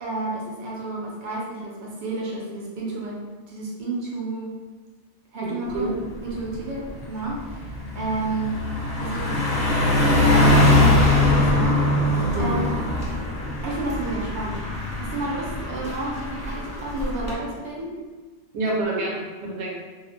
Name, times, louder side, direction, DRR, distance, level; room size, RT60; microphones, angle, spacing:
voice 1, 0.0-3.2 3.5-4.5 5.3-6.0 6.2-8.5 9.0-12.8 13.6-14.6 14.9-17.9, right 2 dB, 55° right, -4 dB, 0.5 m, -31 dB
voice 2, 5.5-5.9 12.3-12.6 18.5-19.7, right 2 dB, 80° right, -3 dB, 0.9 m, -27 dB
Car passing by, 5.8-6.0 6.4-17.3, left 2 dB, 45° left, 0.7 m, -22 dB
2.4 x 2.0 x 2.6 m, 1.3 s
omnidirectional pair, 1.2 m